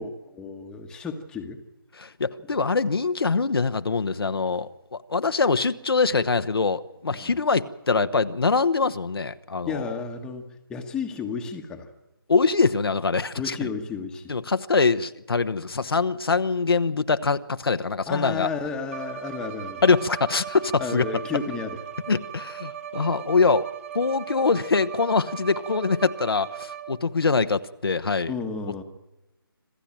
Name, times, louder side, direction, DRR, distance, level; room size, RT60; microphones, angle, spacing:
voice 1, 0.0-1.6 7.1-7.4 9.7-11.9 13.4-14.4 18.1-19.8 20.8-21.8 28.3-28.8, left 5 dB, 5° left, 3 dB, 1.3 m, -32 dB
voice 2, 2.0-9.8 12.3-13.6 14.3-18.5 19.8-21.0 22.1-23.7 23.9-28.3, left 4 dB, 75° left, 10 dB, 1.0 m, -23 dB
Bowed string instrument, 18.9-27.2, right 10 dB, 35° right, 2.5 m, -38 dB
26.5 x 15.0 x 8.9 m, 1.0 s
figure-of-eight pair, 155°, 12 cm